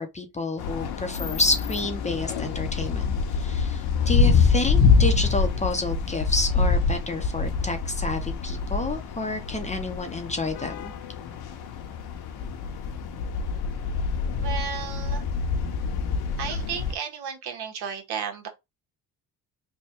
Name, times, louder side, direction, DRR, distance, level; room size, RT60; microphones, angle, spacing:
voice 1, 0.0-10.9, left 2 dB, 20° left, 0.6 m, -29 dB
sound 1, 0.6-16.9, left 5 dB, 65° left, 0.9 m, -25 dB
voice 2, 14.4-15.2 16.4-18.5, right 7 dB, 70° right, 1.2 m, -33 dB
3.4 x 2.2 x 4.3 m
cardioid pair, 110°, 40 cm